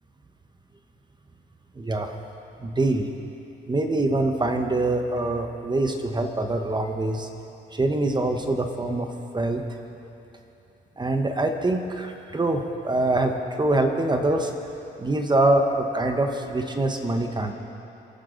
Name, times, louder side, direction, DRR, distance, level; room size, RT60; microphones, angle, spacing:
voice 1, 1.7-2.1 2.6-3.1 3.7-7.3 7.7-9.6 11.0-14.5 15.0-17.5, right 2 dB, 20° right, 5 dB, 1.1 m, -24 dB
27.5 x 9.3 x 3.9 m, 3.0 s
cardioid pair, 90°, 20 cm